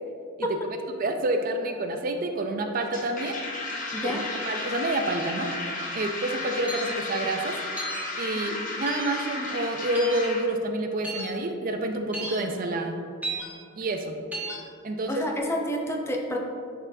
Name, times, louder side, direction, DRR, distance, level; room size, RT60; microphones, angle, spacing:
voice 1, 1.0-3.4 4.0-4.2 4.5-5.5 5.9-7.5 8.2-13.0 13.8-14.2 14.8-15.2, right 1 dB, 40° right, 5 dB, 0.4 m, -28 dB
sound 1, 2.8-10.4, left 2 dB, 40° left, 0.9 m, -34 dB
voice 2, 3.9-4.2 8.4-8.6 15.1-16.4, equal, 10° left, 1 dB, 0.5 m, -29 dB
sound 2, 6.7-6.9 7.8-8.0 8.9-9.1 9.9-10.2 11.0-11.2 12.1-12.3 13.2-13.5 14.3-14.5, right 2 dB, 5° right, 1.1 m, -33 dB
10.5 x 4.3 x 2.7 m, 2.3 s
head